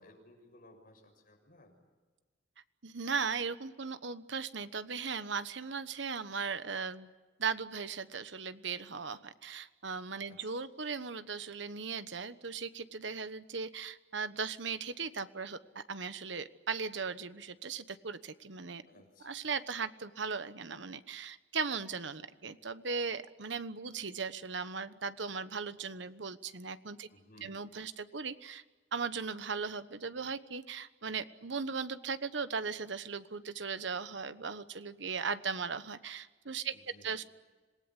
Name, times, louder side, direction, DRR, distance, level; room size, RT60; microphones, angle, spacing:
voice 1, 0.0-1.7 10.3-10.6 18.9-19.3 27.1-27.7 36.7-37.2, left 1 dB, 50° left, 3 dB, 6.8 m, -59 dB
voice 2, 2.8-7.1 7.4-18.8 19.2-27.1 27.4-28.6 28.9-36.7 37.0-37.2, right 5 dB, 70° right, 12 dB, 1.2 m, -38 dB
26.5 x 19.5 x 9.8 m, 1.3 s
head